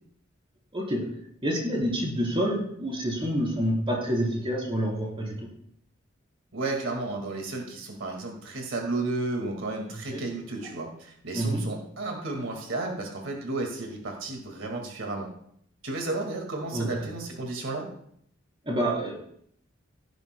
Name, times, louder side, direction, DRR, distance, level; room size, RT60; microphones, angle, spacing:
voice 1, 1.4-5.5 10.1-10.2 11.3-11.6 16.7-16.9 18.7-19.1, equal, 30° right, -3 dB, 3.6 m, -27 dB
voice 2, 6.5-15.3 15.8-17.9, right 2 dB, 85° right, 2 dB, 2.0 m, -33 dB
16.5 x 10.5 x 2.2 m, 0.66 s
head